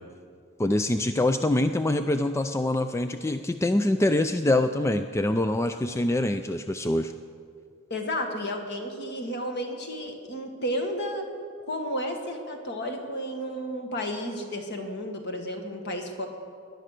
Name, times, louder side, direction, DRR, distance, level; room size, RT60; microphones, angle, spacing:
voice 1, 0.6-7.1, left 1 dB, 15° left, 9 dB, 0.3 m, -25 dB
voice 2, 7.9-11.3 11.7-16.3, equal, 50° left, 4 dB, 1.9 m, -32 dB
18.5 x 11.5 x 6.6 m, 2.3 s
head